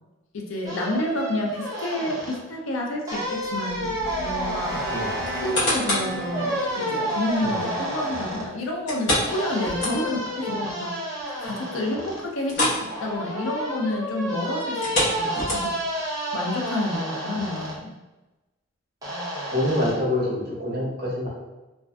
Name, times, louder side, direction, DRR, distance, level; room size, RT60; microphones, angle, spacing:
voice 1, 0.3-4.0 4.2-10.9 11.3-15.7 16.3-17.9, left 1 dB, 80° left, 0 dB, 0.5 m, -29 dB
sound 1, 0.7-2.4 3.1-5.6 6.3-8.5 9.3-12.2 12.9-17.7 19.0-19.9, right 1 dB, 20° right, 0.7 m, -30 dB
sound 2, 3.4-8.6, right 1 dB, 85° right, 0.4 m, -36 dB
sound 3, 5.2-6.2 6.7-6.8 8.9-10.3 10.7-10.8 11.2-11.3 12.4-12.9 13.1-13.4 14.7-15.9 16.6-16.7, left 1 dB, 65° left, 1.0 m, -26 dB
voice 2, 19.5-21.3, left 1 dB, 50° right, -4 dB, 0.8 m, -26 dB
2.5 x 2.4 x 2.2 m, 1.1 s
head